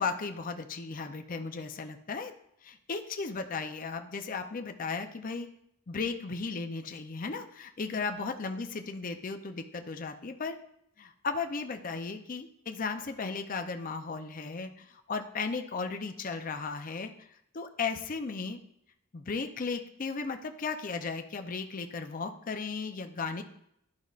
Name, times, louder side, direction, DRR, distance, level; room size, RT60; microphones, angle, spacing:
voice 1, 0.0-2.3 2.6-5.5 5.9-10.6 11.0-17.3 17.5-18.6 19.1-23.4, left 4 dB, 40° left, 6 dB, 0.5 m, -35 dB
12.0 x 5.2 x 2.4 m, 0.76 s
head